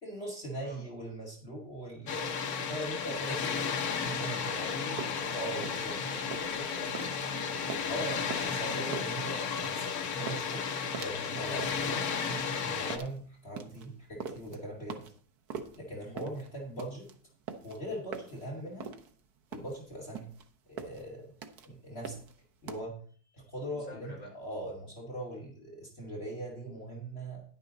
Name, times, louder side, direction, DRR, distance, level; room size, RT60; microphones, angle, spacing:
voice 1, 0.0-4.9 5.3-6.0 7.9-10.7 11.0-12.1 12.6-15.0 15.8-17.1 17.6-18.9 19.5-20.3 20.7-21.3 21.6-22.2 22.6-23.0 23.3-27.4, right 1 dB, 40° left, -1 dB, 2.2 m, -40 dB
Water, 2.1-13.0, left 6 dB, 75° left, 1.4 m, -33 dB
voice 2, 4.4-5.4 5.9-7.7 8.8-9.0 15.9-16.2 20.1-20.2 23.7-24.3, left 1 dB, 25° left, -3 dB, 4.7 m, -47 dB
sound 1, 5.0-22.8, right 6 dB, 80° right, 1.5 m, -44 dB
10.5 x 9.3 x 3.9 m, 0.44 s
omnidirectional pair, 1.6 m